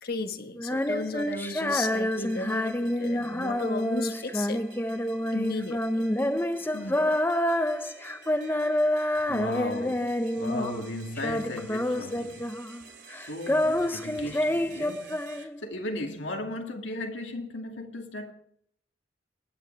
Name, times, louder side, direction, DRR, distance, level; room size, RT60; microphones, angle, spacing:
voice 1, 0.0-4.6 5.3-6.1 6.7-7.2, left 3 dB, 50° left, 1.4 m, -35 dB
Female singing, 0.6-10.9 11.2-12.8 13.1-15.8, left 1 dB, 10° left, 0.7 m, -28 dB
sound 1, 0.6-15.4, right 3 dB, 65° right, 2.9 m, -51 dB
voice 2, 9.3-12.5 13.3-18.3, left 2 dB, 75° left, 2.4 m, -36 dB
30.0 x 10.5 x 3.4 m
head